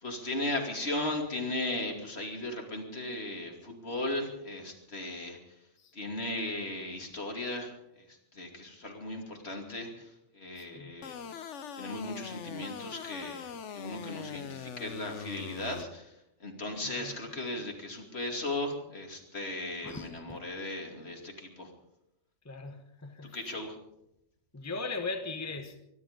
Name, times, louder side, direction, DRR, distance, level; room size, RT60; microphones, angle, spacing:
voice 1, 0.0-5.4 5.9-7.7 8.0-11.2 11.7-16.1 16.4-21.7 23.3-23.8, left 1 dB, 60° left, 3.0 m, -37 dB
voice 2, 10.6-11.0 16.8-17.2 19.8-20.4 22.4-23.4 24.5-25.8, left 3 dB, 15° left, 1.2 m, -39 dB
sound 1, 11.0-15.8, left 7 dB, 80° left, 1.2 m, -42 dB
24.0 x 11.0 x 5.3 m
omnidirectional pair, 1.2 m